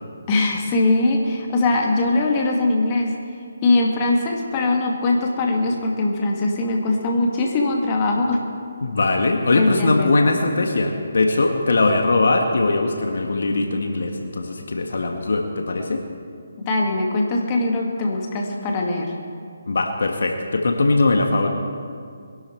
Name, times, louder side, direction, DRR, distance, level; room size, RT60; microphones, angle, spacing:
voice 1, 0.3-3.2 3.6-8.4 9.5-10.1 16.6-19.1, left 2 dB, 25° left, 0 dB, 2.1 m, -21 dB
voice 2, 8.8-16.0 19.7-21.5, left 2 dB, 65° left, 4 dB, 1.6 m, -20 dB
22.0 x 11.5 x 4.6 m, 2.3 s
figure-of-eight pair, 150°, 0 cm